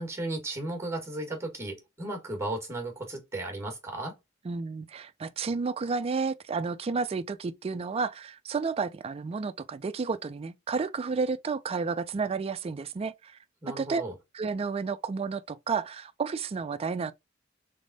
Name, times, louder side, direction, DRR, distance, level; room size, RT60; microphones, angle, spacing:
voice 1, 0.0-4.2 13.6-14.1, right 2 dB, 15° right, 1.5 m, -35 dB
voice 2, 4.4-13.4 13.7-14.0 14.3-17.1, right 4 dB, 30° right, 0.3 m, -31 dB
3.5 x 3.5 x 4.0 m
head